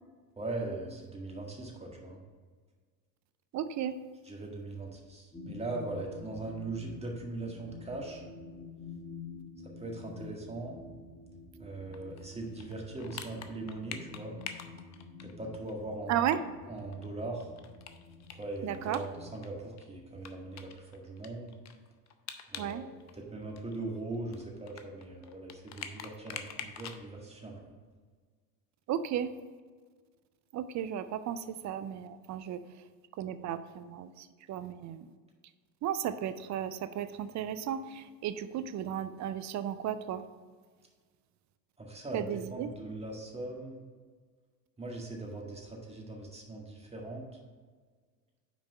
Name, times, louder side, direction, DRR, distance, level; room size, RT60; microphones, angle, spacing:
voice 1, 0.4-2.2 4.3-8.2 9.8-10.7 11.6-14.4 15.2-16.4 16.7-17.5 18.4-21.6 22.5-22.9 23.2-27.6 41.8-43.8 44.8-47.3, right 2 dB, 10° right, -1 dB, 1.8 m, -40 dB
voice 2, 3.5-4.0 16.1-16.4 18.6-19.0 22.6-22.8 28.9-29.3 30.5-32.6 33.2-35.1 35.8-40.2 42.1-42.7, right 10 dB, 35° right, 12 dB, 0.5 m, -34 dB
sound 1, 5.3-19.6, left 4 dB, 15° left, 1.4 m, -49 dB
sound 2, 11.9-15.7 16.0-16.1 16.3-16.4 16.8-19.5 19.8-19.9 20.2-22.7 23.0-27.0, left 8 dB, 35° left, 0.7 m, -45 dB
6.1 x 4.8 x 5.3 m, 1.5 s
hypercardioid pair, 85°, 49 cm